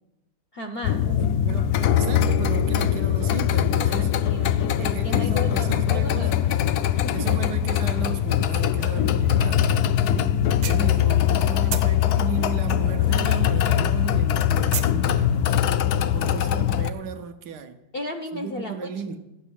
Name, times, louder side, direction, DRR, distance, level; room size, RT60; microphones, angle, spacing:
voice 1, 0.5-1.1 3.8-6.5 7.0-7.6 17.9-18.9, left 1 dB, 50° left, 0.7 m, -35 dB
sound 1, 0.8-16.9, left 10 dB, 70° left, 1.0 m, -22 dB
voice 2, 1.0-4.2 4.8-6.3 7.1-9.7 10.1-10.4 10.7-15.6 16.1-17.8 18.3-19.2, right 6 dB, 65° right, 1.3 m, -35 dB
sound 2, 10.6-11.4 11.7-13.5 13.8-15.0, right 9 dB, 90° right, 1.6 m, -33 dB
13.0 x 6.1 x 8.4 m
omnidirectional pair, 2.0 m